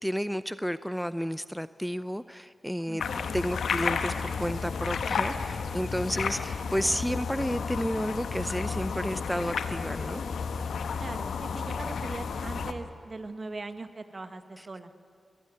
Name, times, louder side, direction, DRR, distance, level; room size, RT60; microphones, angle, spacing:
voice 1, 0.0-3.0 3.3-10.2 14.6-14.7, equal, ahead, 15 dB, 0.6 m, -31 dB
voice 2, 2.9-3.2 11.0-14.9, right 3 dB, 50° right, 9 dB, 1.5 m, -41 dB
sound 1, 3.0-12.7, left 5 dB, 90° left, 1.1 m, -32 dB
23.5 x 17.5 x 9.4 m, 2.2 s
cardioid pair, 45°, 0 cm